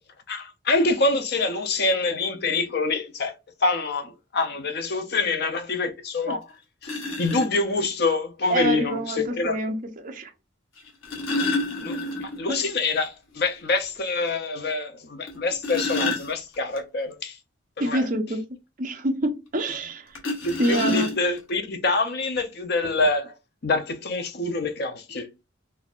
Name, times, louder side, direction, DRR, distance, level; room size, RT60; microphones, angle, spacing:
voice 1, 0.3-3.4 3.6-6.5 7.2-9.6 11.8-17.4 17.8-18.1 20.4-23.3 23.6-25.5, left 3 dB, 50° left, 0.6 m, -26 dB
sound 1, 6.1-6.2 6.8-7.5 8.9-9.0 10.8-12.5 12.8-12.9 13.3-13.4 13.9-14.0 15.3-16.8 20.1-21.5 22.4-22.5 22.8-23.0, left 2 dB, 90° left, 1.1 m, -29 dB
voice 2, 8.5-10.3 12.5-12.6 17.8-18.4 18.8-20.2 20.6-21.1, right 1 dB, 40° right, 0.7 m, -26 dB
4.0 x 2.6 x 2.4 m
head